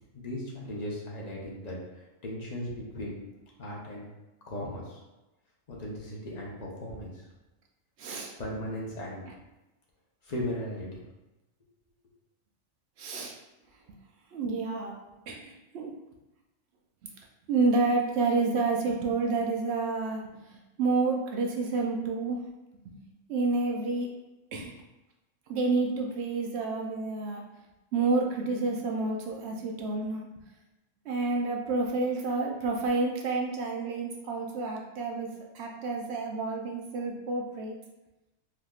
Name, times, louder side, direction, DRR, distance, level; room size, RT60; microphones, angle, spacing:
voice 1, 0.1-3.2 3.6-4.1 4.5-5.0 5.7-7.1 8.4-9.2 10.2-11.0, left 1 dB, 40° left, -4 dB, 0.7 m, -37 dB
voice 2, 8.0-8.3 13.0-13.4 14.3-15.0 15.3-15.9 17.5-22.4 22.9-23.0 23.3-24.1 24.5-24.7 25.5-27.4 27.9-30.4 31.0-37.8, right 3 dB, 65° right, 0 dB, 0.7 m, -29 dB
3.4 x 2.7 x 2.3 m, 1.0 s
omnidirectional pair, 1.4 m